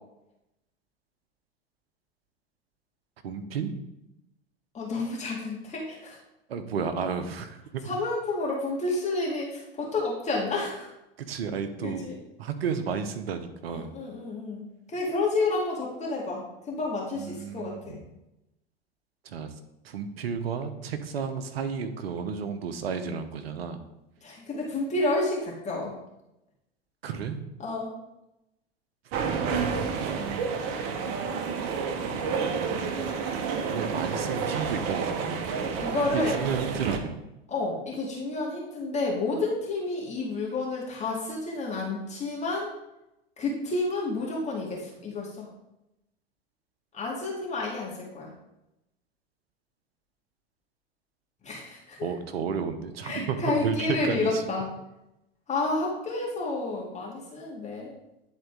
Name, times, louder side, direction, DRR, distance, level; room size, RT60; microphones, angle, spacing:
voice 1, 3.2-3.7 6.5-7.8 11.2-12.1 12.4-14.0 17.1-18.0 19.2-19.5 19.8-23.8 27.0-27.4 29.3-30.5 32.3-33.0 33.6-35.4 36.1-37.2 52.0-54.4, right 6 dB, 70° right, 9 dB, 0.9 m, -32 dB
voice 2, 4.7-6.2 7.8-10.9 11.8-12.2 13.7-18.0 24.2-25.9 27.6-27.9 35.8-36.3 37.5-42.7 43.4-45.5 46.9-48.3 51.4-52.1 53.0-54.7 55.5-57.9, left 2 dB, 20° left, -3 dB, 2.2 m, -30 dB
sound 1, 29.1-37.0, right 5 dB, 45° right, 1.0 m, -30 dB
10.5 x 4.0 x 3.7 m, 0.90 s
figure-of-eight pair, 90°, 32 cm